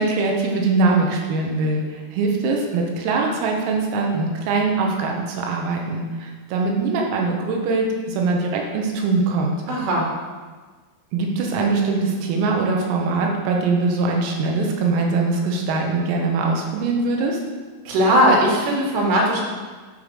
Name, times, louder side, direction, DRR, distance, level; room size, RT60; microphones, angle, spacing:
voice 1, 0.0-9.6 11.1-17.4, right 3 dB, 85° right, 0 dB, 4.0 m, -22 dB
voice 2, 9.7-10.1 17.9-19.4, equal, 70° right, -2 dB, 4.5 m, -18 dB
13.0 x 5.4 x 6.6 m, 1.4 s
omnidirectional pair, 5.9 m